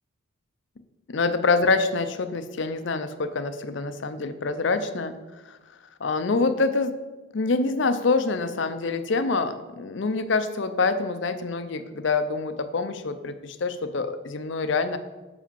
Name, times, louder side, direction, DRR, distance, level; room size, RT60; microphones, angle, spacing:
voice 1, 1.1-5.2 5.5-5.6 6.0-7.0 7.3-15.0, left 3 dB, 60° left, 10 dB, 0.6 m, -26 dB
6.4 x 5.0 x 6.9 m, 1.2 s
head